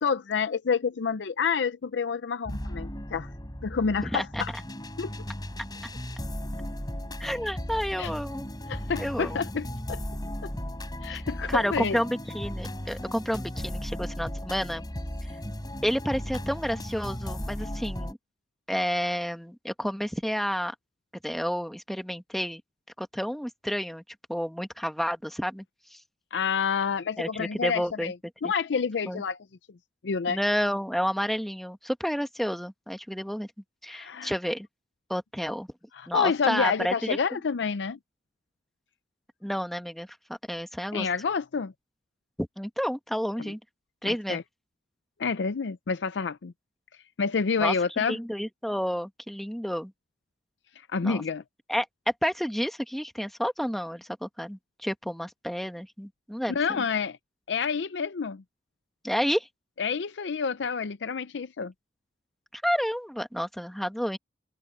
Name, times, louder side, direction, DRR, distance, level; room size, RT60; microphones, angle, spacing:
voice 1, 0.0-3.3 3.6-4.5 5.0-5.1 8.0-8.1 8.7-10.0 10.4-10.5 11.0-12.0 26.3-28.1 28.4-29.4 30.0-30.4 33.9-34.3 35.9-38.0 40.9-41.7 43.4-43.5 44.0-44.4 45.2-46.5 47.2-48.2 50.9-51.4 56.5-57.2 57.5-58.4 59.8-61.7, left 5 dB, 85° left, 0.5 m, -28 dB
sound 1, 2.4-18.1, equal, 25° left, 3.9 m, -36 dB
voice 2, 4.0-4.6 7.2-8.5 9.0-9.4 11.5-14.8 15.8-18.2 18.7-20.7 21.2-22.6 23.0-24.0 24.3-25.6 25.9-26.0 27.2-28.1 29.1-29.2 30.3-33.5 33.8-34.7 35.1-35.7 36.1-37.2 39.4-41.1 42.4-43.6 44.0-44.4 47.6-49.9 51.0-51.2 51.7-51.9 52.2-56.6 59.0-59.5 62.5-64.2, equal, ahead, 1.5 m, -30 dB
head